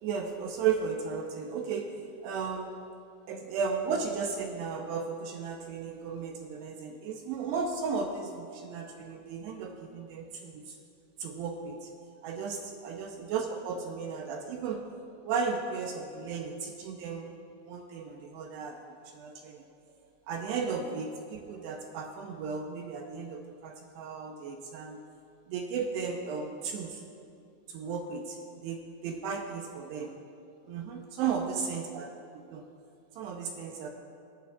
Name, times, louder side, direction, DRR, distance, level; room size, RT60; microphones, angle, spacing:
voice 1, 0.0-1.9 2.2-2.9 3.3-10.8 11.2-11.9 12.2-14.9 15.2-17.3 17.7-19.7 20.3-25.0 25.5-27.0 27.7-28.4 28.6-30.2 30.7-32.1 32.5-32.7 33.2-33.9, right 5 dB, 85° right, 3 dB, 2.6 m, -35 dB
28.5 x 11.5 x 2.4 m, 2.5 s
omnidirectional pair, 5.4 m